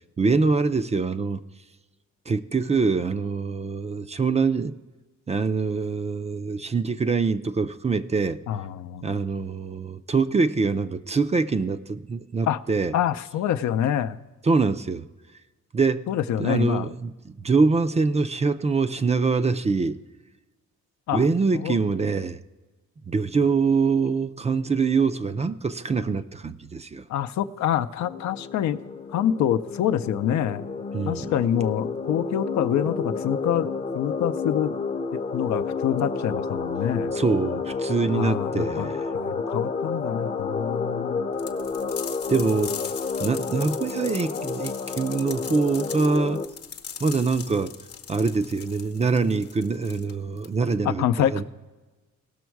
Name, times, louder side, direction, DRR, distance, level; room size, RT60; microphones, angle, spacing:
voice 1, 0.2-1.4 2.3-4.7 5.3-8.4 9.0-12.9 14.4-15.1 15.7-16.1 16.4-20.0 21.1-22.4 23.1-27.1 30.9-31.3 37.1-39.1 42.3-42.8 43.2-46.4 47.0-47.7 48.1-51.1 51.3-51.4, right 4 dB, 20° right, 0.4 m, -24 dB
voice 2, 8.5-9.2 12.5-12.6 12.9-14.2 16.1-16.9 21.1-21.2 21.5-21.8 27.1-28.8 29.1-30.6 31.1-33.7 33.9-34.7 35.3-37.1 38.1-38.9 39.1-41.2 50.8-51.4, left 10 dB, 70° left, 0.6 m, -26 dB
sound 1, 28.0-46.5, left 4 dB, 25° left, 0.7 m, -30 dB
sound 2, 41.4-50.8, left 7 dB, 50° left, 0.9 m, -39 dB
17.0 x 6.2 x 4.6 m
cardioid pair, 90°, 30 cm